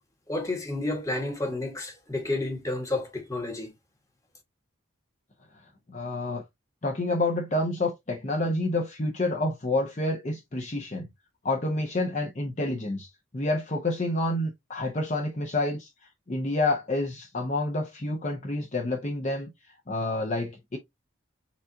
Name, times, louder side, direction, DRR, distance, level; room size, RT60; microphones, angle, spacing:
voice 1, 0.3-3.7, left 2 dB, 15° left, 1.2 m, -30 dB
voice 2, 5.9-6.4 6.8-11.1 11.4-13.1 13.3-15.9 16.3-19.5 19.9-20.8, left 2 dB, 35° left, 0.7 m, -28 dB
7.0 x 2.5 x 2.6 m
head